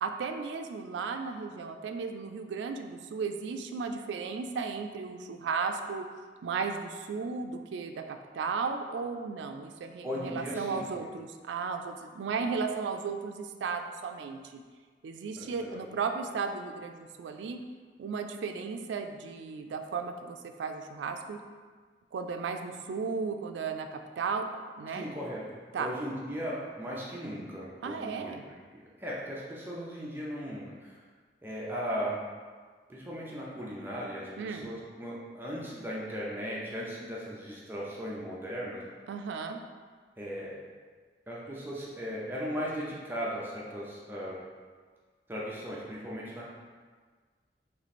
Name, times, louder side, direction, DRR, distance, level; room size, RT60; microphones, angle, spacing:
voice 1, 0.0-6.1 6.4-14.6 15.0-17.6 18.0-21.4 22.1-24.4 24.8-25.1 25.7-25.9 27.8-28.4 34.4-34.7 39.1-39.6, right 5 dB, 85° right, 6 dB, 0.3 m, -35 dB
voice 2, 10.0-10.9 15.4-15.8 24.9-25.4 25.8-28.3 29.0-31.0 31.4-32.2 32.9-38.8 40.2-40.6 41.3-44.4 45.3-46.5, equal, 10° right, -6 dB, 0.6 m, -37 dB
3.2 x 3.1 x 4.1 m, 1.5 s
head